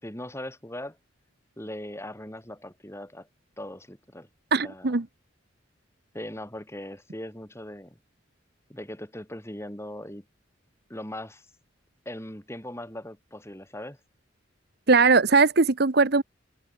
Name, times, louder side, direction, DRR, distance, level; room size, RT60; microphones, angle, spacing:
voice 1, 0.0-1.0 1.6-3.3 3.6-4.3 4.6-5.0 6.1-8.0 8.7-10.2 10.9-11.5 12.0-14.0, left 1 dB, 15° left, 5.0 m, -39 dB
voice 2, 4.5-5.1 14.9-16.2, right 4 dB, 55° right, 0.9 m, -20 dB
open air
head